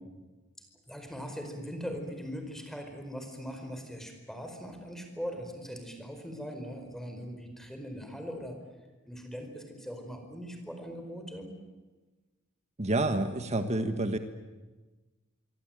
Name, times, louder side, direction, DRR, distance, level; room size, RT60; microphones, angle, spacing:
voice 1, 0.9-8.6 9.1-11.5, equal, ahead, 5 dB, 4.8 m, -40 dB
voice 2, 12.8-14.2, right 2 dB, 35° right, 8 dB, 1.5 m, -28 dB
25.5 x 24.0 x 9.1 m, 1.2 s
head